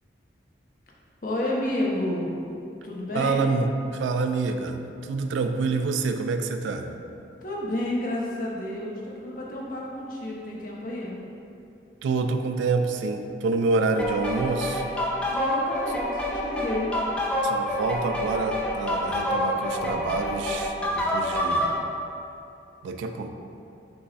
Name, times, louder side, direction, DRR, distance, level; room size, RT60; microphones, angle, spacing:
voice 1, 1.2-2.3 2.8-3.4 7.4-11.2 15.3-16.9, left 1 dB, 45° left, -4 dB, 0.7 m, -30 dB
voice 2, 3.1-4.8 5.0-6.9 12.0-14.8 17.4-21.7 22.8-23.3, right 4 dB, 90° right, 7 dB, 0.3 m, -27 dB
sound 1, 14.0-21.8, left 1 dB, 5° left, 0.4 m, -27 dB
5.6 x 2.0 x 4.0 m, 2.6 s
head